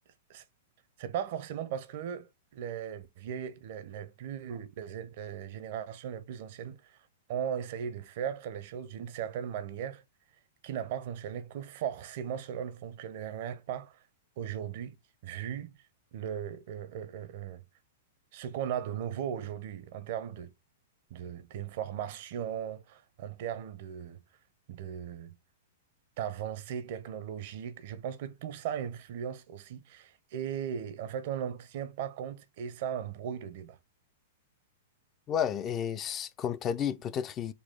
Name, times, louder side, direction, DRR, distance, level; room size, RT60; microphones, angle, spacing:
voice 1, 1.0-6.9 7.3-10.0 10.6-14.0 14.4-14.9 15.2-15.7 16.1-17.6 18.3-20.5 21.1-24.2 24.7-25.3 26.2-33.8, right 9 dB, 55° right, 0.7 m, -37 dB
voice 2, 35.3-37.5, left 8 dB, 30° left, 0.4 m, -32 dB
4.1 x 2.3 x 3.6 m
hypercardioid pair, 110°, 0 cm